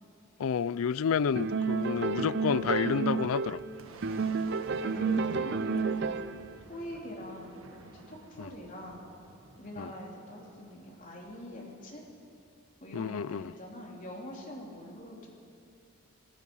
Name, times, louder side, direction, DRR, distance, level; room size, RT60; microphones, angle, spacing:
voice 1, 0.4-3.6 8.4-8.5 9.8-9.9 12.9-13.5, left 6 dB, 75° left, 20 dB, 0.4 m, -30 dB
sound 1, 1.4-3.7 4.0-6.5, right 4 dB, 50° right, 0.6 m, -30 dB
Boom, 3.4-12.3, right 2 dB, 70° right, 1.5 m, -54 dB
voice 2, 3.8-4.4 4.8-6.2 6.7-9.1 9.6-12.0 12.8-15.3, equal, 35° left, -2 dB, 3.6 m, -44 dB
27.0 x 17.5 x 5.6 m, 2.5 s
head